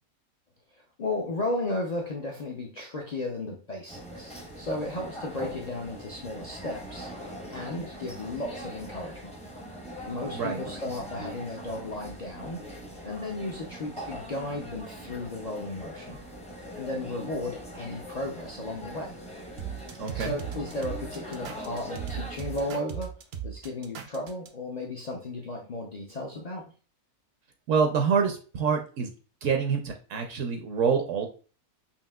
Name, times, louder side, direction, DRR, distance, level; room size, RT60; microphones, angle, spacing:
voice 1, 1.0-9.3 10.1-12.6 13.0-16.2 16.7-19.2 20.1-23.1 23.4-26.7, left 2 dB, 70° left, 0 dB, 0.4 m, -34 dB
sound 1, 3.9-22.7, equal, 10° left, 0.4 m, -42 dB
voice 2, 10.3-10.6 20.0-20.4 27.7-29.1 29.4-31.3, right 6 dB, 70° right, 4 dB, 0.9 m, -26 dB
sound 2, 19.6-24.5, right 9 dB, 85° right, 0.4 m, -37 dB
5.6 x 2.7 x 2.2 m, 0.37 s
omnidirectional pair, 1.5 m